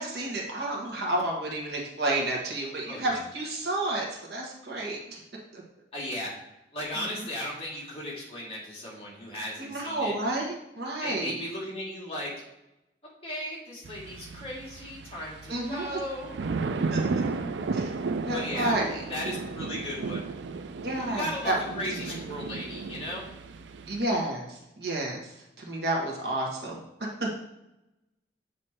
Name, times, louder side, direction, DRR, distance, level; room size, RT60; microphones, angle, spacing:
voice 1, 0.0-4.0 4.3-5.2 5.5-5.6 6.9-7.3 9.6-11.4 15.5-16.0 16.9-17.0 17.7-17.9 18.3-19.0 20.8-21.6 22.1-22.2 23.9-26.8 27.2-27.3, right 1 dB, 65° right, -2 dB, 1.5 m, -30 dB
voice 2, 2.9-3.2 5.9-6.3 6.7-10.1 11.0-12.3 13.2-16.3 18.3-18.7 19.1-20.3 21.1-23.3, left 1 dB, 35° left, -5 dB, 2.1 m, -36 dB
sound 1, 13.8-24.0, right 4 dB, 90° right, 0.4 m, -34 dB
8.0 x 3.2 x 4.4 m, 0.92 s
head